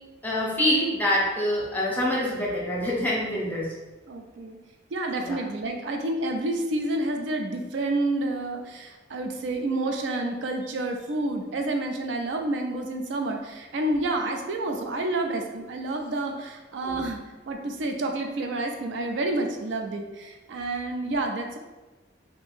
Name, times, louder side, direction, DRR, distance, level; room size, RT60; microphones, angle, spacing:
voice 1, 0.2-3.7 5.2-5.4 16.8-17.0, left 1 dB, 10° left, -4 dB, 0.6 m, -25 dB
voice 2, 4.1-4.6 4.9-17.2 17.5-21.6, right 2 dB, 70° right, 4 dB, 0.4 m, -29 dB
2.8 x 2.6 x 3.5 m, 1.1 s
head